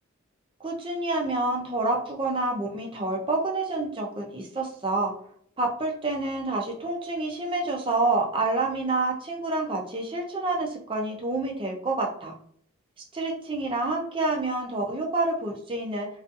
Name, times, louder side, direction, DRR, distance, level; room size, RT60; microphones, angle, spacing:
voice 1, 0.6-5.1 5.6-12.3 13.1-16.1, right 2 dB, 25° right, 1 dB, 0.4 m, -28 dB
2.5 x 2.4 x 2.4 m, 0.62 s
head